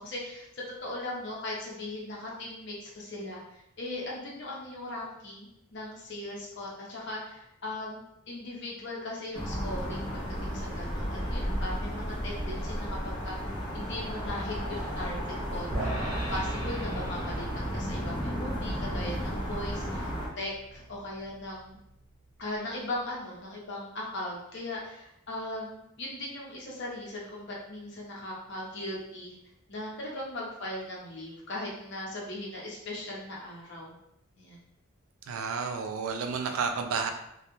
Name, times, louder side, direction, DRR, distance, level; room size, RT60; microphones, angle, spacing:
voice 1, 0.0-13.4 13.7-17.5 17.7-21.8 22.4-29.3 29.7-33.9 34.4-34.6, left 1 dB, 55° left, -3 dB, 0.7 m, -39 dB
sound 1, 9.3-20.3, equal, 20° left, 0.4 m, -33 dB
sound 2, 15.7-22.1, right 1 dB, 40° right, 0.7 m, -39 dB
voice 2, 35.3-37.1, right 5 dB, 80° right, 5 dB, 0.3 m, -31 dB
2.2 x 2.1 x 2.9 m, 0.80 s
head